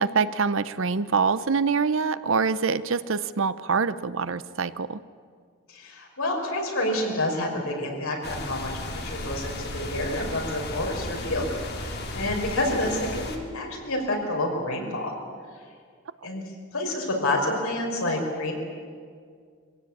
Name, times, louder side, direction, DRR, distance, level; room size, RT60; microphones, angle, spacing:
voice 1, 0.0-5.0, right 5 dB, 65° right, 15 dB, 0.7 m, -25 dB
voice 2, 5.7-11.5 11.8-15.1 16.2-16.4 16.7-18.5, left 1 dB, 80° left, 0 dB, 5.1 m, -28 dB
sound 1, 8.2-13.4, left 2 dB, 45° left, 2.4 m, -34 dB
23.5 x 16.5 x 8.7 m, 2.1 s
head